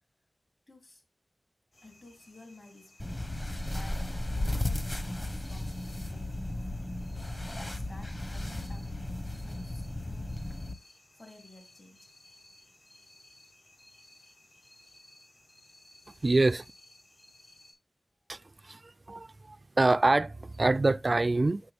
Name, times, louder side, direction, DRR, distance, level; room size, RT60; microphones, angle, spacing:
voice 1, 0.7-1.0 1.8-3.4 3.7-6.4 6.8-9.0 9.4-10.7 11.1-12.1 18.4-18.5, left 2 dB, 50° left, 3.0 m, -54 dB
sound 1, 1.7-17.7, left 1 dB, 80° left, 5.4 m, -59 dB
sound 2, 3.0-10.7, left 1 dB, 30° left, 1.2 m, -35 dB
voice 2, 16.2-16.6 18.3-21.6, right 2 dB, 50° right, 0.3 m, -26 dB
7.9 x 6.4 x 3.4 m
wide cardioid pair, 55°, 0 cm